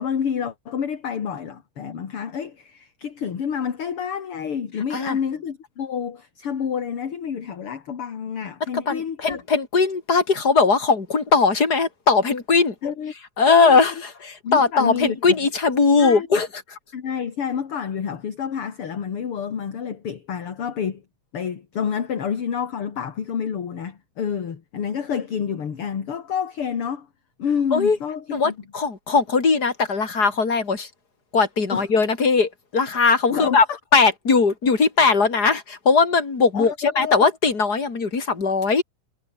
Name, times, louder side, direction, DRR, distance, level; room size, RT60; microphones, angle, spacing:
voice 1, 0.0-9.4 12.8-13.1 13.5-13.9 14.4-15.2 16.0-16.3 16.9-21.0 21.3-27.1 27.4-28.5 31.7-31.9 33.3-33.8 36.5-37.1, left 7 dB, 45° left, 2.8 m, -28 dB
voice 2, 8.7-12.7 13.4-16.6 27.7-28.0 28.3-30.9 31.3-33.7 33.9-38.8, left 4 dB, 30° left, 4.0 m, -19 dB
omnidirectional pair, 3.9 m